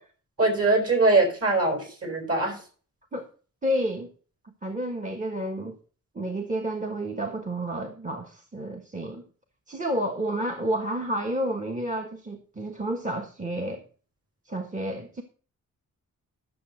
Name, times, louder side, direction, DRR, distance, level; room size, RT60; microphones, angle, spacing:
voice 1, 0.4-2.6, right 2 dB, 45° right, 4.8 m, -22 dB
voice 2, 3.6-4.1 4.4-5.8 6.1-9.2 9.7-13.8 14.4-15.2, right 1 dB, 25° right, 1.3 m, -30 dB
11.5 x 6.9 x 6.4 m
wide cardioid pair, 135°, 32 cm